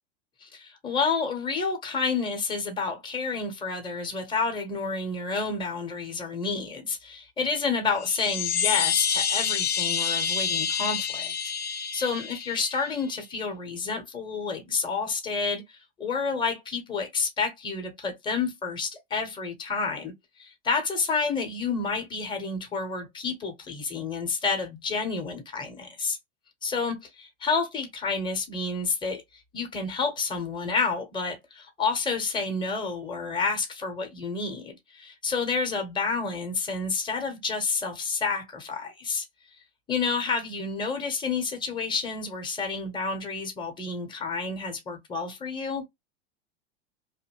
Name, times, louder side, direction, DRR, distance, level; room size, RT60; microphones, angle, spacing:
voice 1, 0.4-11.3 11.7-26.2 26.6-29.2 29.5-39.3 39.9-45.8, left 4 dB, 15° left, 0.9 m, -29 dB
sound 1, 8.0-13.0, left 7 dB, 30° left, 0.5 m, -28 dB
2.6 x 2.1 x 2.9 m
hypercardioid pair, 105°, 32 cm